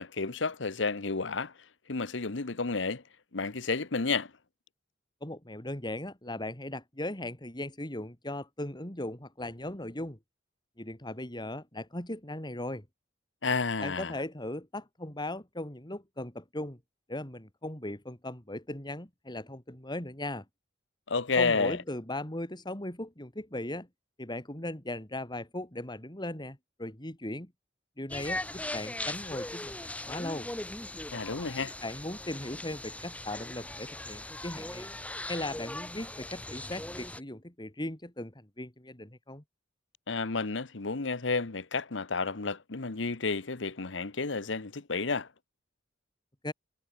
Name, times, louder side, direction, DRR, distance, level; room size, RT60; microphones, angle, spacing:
voice 1, 0.0-1.5 1.9-3.0 3.3-4.3 13.4-14.1 21.1-21.8 31.1-31.7 40.1-45.3, left 4 dB, 70° left, 1.1 m, -31 dB
voice 2, 5.2-10.2 10.8-12.8 13.8-16.8 17.1-20.4 21.4-23.9 24.2-27.5 28.0-30.5 31.8-34.9 35.3-39.4 46.4-46.5, left 1 dB, 25° left, 4.1 m, -38 dB
sound 1, 28.1-37.2, left 1 dB, 5° left, 1.0 m, -39 dB
head